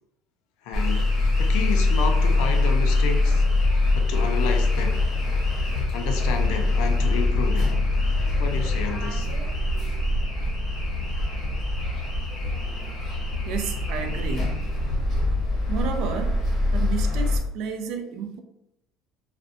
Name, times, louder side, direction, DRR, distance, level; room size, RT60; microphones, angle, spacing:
voice 1, 0.6-1.1 1.4-3.4 4.0-5.0 5.9-7.8 8.4-9.3, left 5 dB, 75° left, 0.4 m, -30 dB
sound 1, 0.7-17.4, left 2 dB, 35° left, 0.8 m, -23 dB
voice 2, 13.5-14.6 15.7-16.4 16.7-18.4, right 6 dB, 65° right, 0.3 m, -31 dB
2.6 x 2.0 x 2.5 m
cardioid pair, 145°, 0 cm